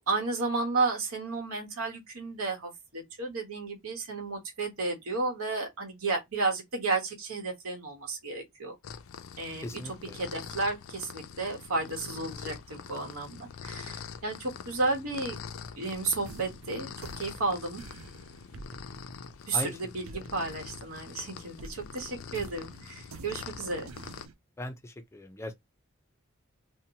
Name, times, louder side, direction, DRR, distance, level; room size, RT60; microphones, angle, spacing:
voice 1, 0.0-8.8 9.4-15.4 15.8-17.8 19.5-23.9, right 3 dB, 85° right, 1.1 m, -33 dB
sound 1, 8.8-24.3, left 6 dB, 70° left, 0.4 m, -44 dB
voice 2, 9.6-10.2 19.5-20.2 24.6-25.5, left 1 dB, 15° left, 0.5 m, -39 dB
sound 2, 15.9-21.2 21.6-24.3, right 3 dB, 70° right, 0.4 m, -48 dB
2.7 x 2.1 x 2.7 m
head